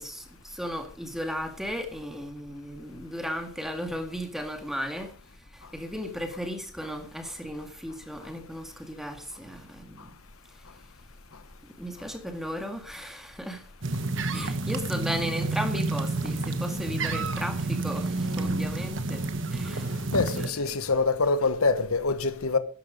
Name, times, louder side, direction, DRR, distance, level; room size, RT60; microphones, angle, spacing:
voice 1, 0.0-10.2 11.8-13.7 14.3-20.1 20.4-20.8, equal, ahead, 2.0 m, -36 dB
sound 1, 13.8-20.5, right 3 dB, 60° right, 1.3 m, -29 dB
voice 2, 20.1-22.6, left 3 dB, 90° left, 1.2 m, -25 dB
13.0 x 10.5 x 5.3 m
head